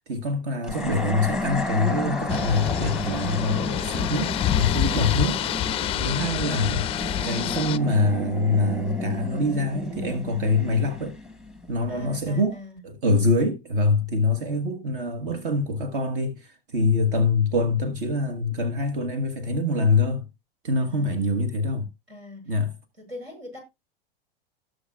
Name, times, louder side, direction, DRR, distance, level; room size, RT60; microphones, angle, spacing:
voice 1, 0.1-5.4 6.0-6.9 7.2-11.2 11.7-20.3 20.6-21.9 22.4-22.8, left 2 dB, 60° right, 1.4 m, -25 dB
sound 1, 0.6-12.0, left 2 dB, ahead, 0.8 m, -32 dB
sound 2, 2.3-7.8, left 12 dB, 20° left, 0.4 m, -27 dB
voice 2, 5.8-6.5 11.9-12.8 20.8-21.4 22.1-22.5 23.0-23.6, left 2 dB, 85° right, 7.1 m, -41 dB
17.5 x 6.4 x 2.4 m
figure-of-eight pair, 95°, 29 cm